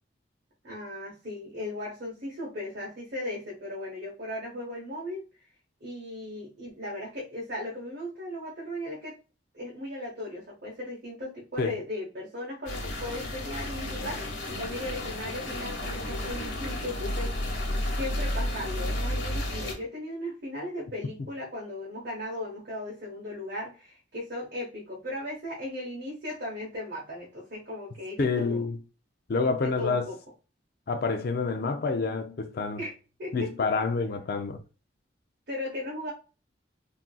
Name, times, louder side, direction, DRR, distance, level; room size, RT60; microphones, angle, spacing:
voice 1, 0.6-5.2 5.8-9.2 9.5-17.6 17.9-28.7 29.6-30.2 32.8-32.9 33.2-33.5 35.5-36.1, left 1 dB, 60° right, 1.1 m, -37 dB
sound 1, 12.7-19.7, left 1 dB, 90° left, 1.1 m, -32 dB
voice 2, 28.2-28.8 29.3-30.0 30.9-32.8 33.3-34.6, left 4 dB, 55° left, 0.4 m, -28 dB
3.6 x 2.7 x 2.2 m
head